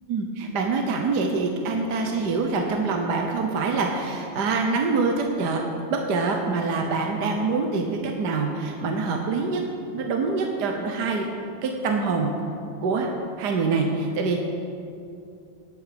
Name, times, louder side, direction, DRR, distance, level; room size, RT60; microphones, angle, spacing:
voice 1, 0.1-5.6 5.9-9.6 9.9-11.3 11.6-12.3 12.8-13.1 13.4-14.4, right 4 dB, 55° right, 2 dB, 1.4 m, -25 dB
19.0 x 8.4 x 5.1 m, 2.5 s
omnidirectional pair, 2.4 m